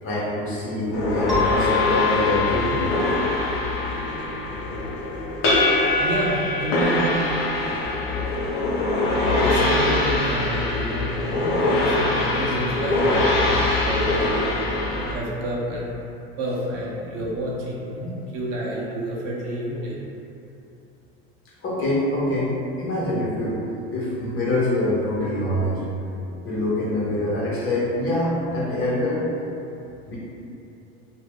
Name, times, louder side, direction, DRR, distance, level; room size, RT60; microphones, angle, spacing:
voice 1, 0.0-2.9 11.8-11.9 13.8-14.0 21.6-22.5 22.8-23.6 23.9-25.8 26.4-29.2 30.1-30.2, left 1 dB, 45° left, -7 dB, 1.0 m, -25 dB
sound 1, 0.9-15.1, left 2 dB, 65° left, 0.8 m, -23 dB
sound 2, 1.3-5.7, left 7 dB, ahead, 1.0 m, -29 dB
voice 2, 6.0-7.2 9.1-14.5 15.1-15.9 16.4-20.0, right 1 dB, 55° right, -5 dB, 0.8 m, -29 dB
2.5 x 2.0 x 3.4 m, 2.7 s
hypercardioid pair, 90°, 31 cm